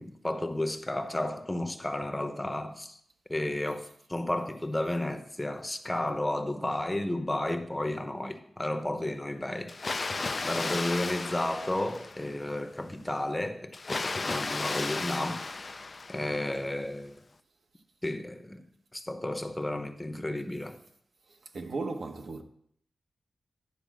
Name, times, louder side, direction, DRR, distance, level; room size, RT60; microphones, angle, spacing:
voice 1, 0.0-3.0 3.3-9.7 10.4-15.5 16.1-17.1 18.0-18.6 18.9-20.8, left 1 dB, 15° left, 0.8 m, -32 dB
Water, 9.7-12.5 13.7-16.5, left 3 dB, 40° left, 0.4 m, -34 dB
voice 2, 21.3-22.4, right 3 dB, 70° right, 1.1 m, -36 dB
11.0 x 4.8 x 7.5 m
wide cardioid pair, 115°, 0 cm